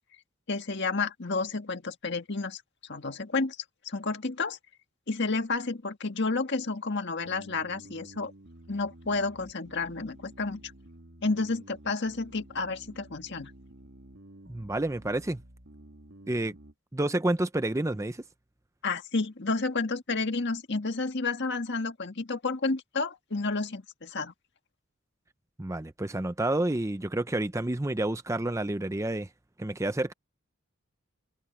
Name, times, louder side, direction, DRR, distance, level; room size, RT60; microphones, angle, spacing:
voice 1, 0.5-2.6 2.9-3.6 3.9-4.6 5.1-8.3 8.7-10.7 11.2-13.5 18.8-24.3, left 3 dB, 55° left, 1.7 m, -31 dB
sound 1, 7.2-16.7, right 1 dB, 60° right, 2.6 m, -51 dB
voice 2, 14.5-15.4 16.3-16.5 16.9-18.2 25.6-29.3 29.6-30.1, right 1 dB, 15° right, 0.6 m, -29 dB
head